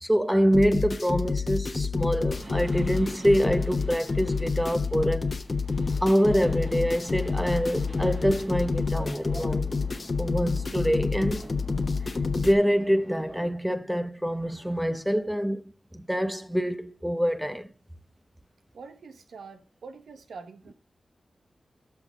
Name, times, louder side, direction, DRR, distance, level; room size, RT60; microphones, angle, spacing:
voice 1, 0.0-5.3 6.0-9.7 10.2-11.5 12.4-15.6 15.9-17.7, equal, 5° right, 0.9 m, -25 dB
sound 1, 0.5-12.5, left 4 dB, 50° left, 1.1 m, -28 dB
sound 2, 2.2-13.5, right 2 dB, 55° right, 4.4 m, -45 dB
voice 2, 18.7-20.7, right 4 dB, 90° right, 1.2 m, -45 dB
13.0 x 6.0 x 3.6 m
cardioid pair, 60°, 0 cm